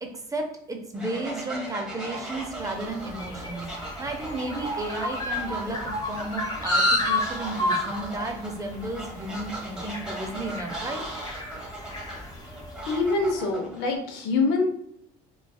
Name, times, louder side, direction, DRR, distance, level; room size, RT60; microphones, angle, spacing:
voice 1, 0.0-3.7 4.0-5.8 6.1-11.0, right 2 dB, 20° right, 3 dB, 0.5 m, -33 dB
Fowl, 0.9-14.0, right 1 dB, 5° right, 0.9 m, -39 dB
sound 1, 2.5-13.1, left 1 dB, 25° left, 1.0 m, -31 dB
voice 2, 12.9-14.7, left 3 dB, 80° left, 3 dB, 0.6 m, -25 dB
2.6 x 2.3 x 2.2 m, 0.72 s
supercardioid pair, 85°, 17 cm